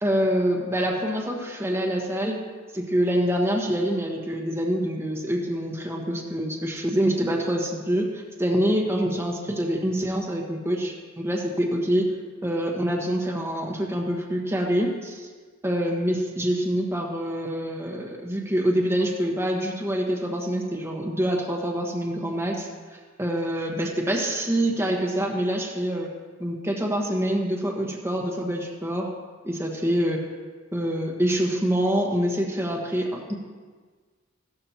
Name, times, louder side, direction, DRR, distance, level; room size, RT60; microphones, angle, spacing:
voice 1, 0.0-2.4 2.7-12.1 12.4-15.3 15.6-22.7 23.2-26.1 26.4-29.1 29.4-30.2 30.7-33.3, equal, 15° right, -1 dB, 1.3 m, -26 dB
14.5 x 12.5 x 3.0 m, 1.5 s
head